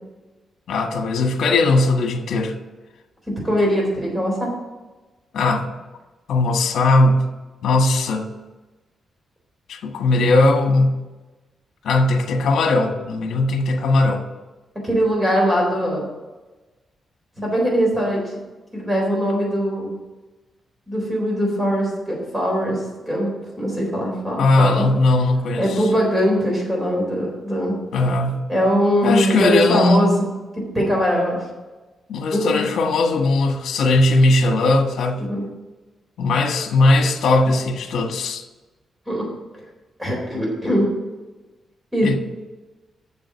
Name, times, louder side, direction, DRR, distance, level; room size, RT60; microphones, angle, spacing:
voice 1, 0.7-2.5 5.3-5.7 6.3-7.3 7.6-8.3 9.7-11.0 11.8-14.2 24.4-25.7 27.9-28.4 29.0-30.1 32.1-35.2 36.2-38.4 42.0-42.2, left 2 dB, 75° left, 5 dB, 1.4 m, -18 dB
voice 2, 3.3-4.5 14.8-16.0 17.4-18.2 18.7-19.9 20.9-23.3 23.6-24.9 25.6-27.8 28.5-30.1 30.7-31.4 32.3-32.7 35.2-35.4 39.1-39.3 40.0-40.9 41.9-42.2, equal, 10° right, -2 dB, 3.9 m, -21 dB
7.5 x 7.0 x 7.1 m, 1.2 s
wide cardioid pair, 160°, 0 cm